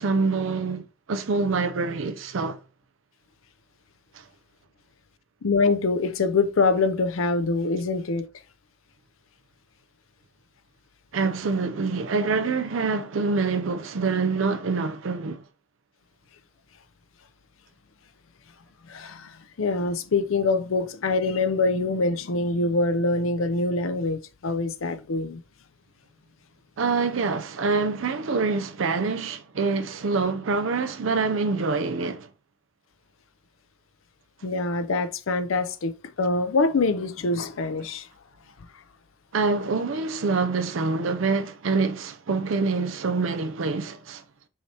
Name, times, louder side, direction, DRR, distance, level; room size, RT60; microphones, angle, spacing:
voice 1, 0.0-2.6 4.1-4.2 11.1-15.4 26.8-32.3 39.3-44.2, right 4 dB, 75° right, 0.5 m, -26 dB
voice 2, 5.4-8.3 18.9-25.4 34.4-38.1, left 3 dB, 85° left, 0.6 m, -24 dB
5.6 x 2.9 x 3.2 m
head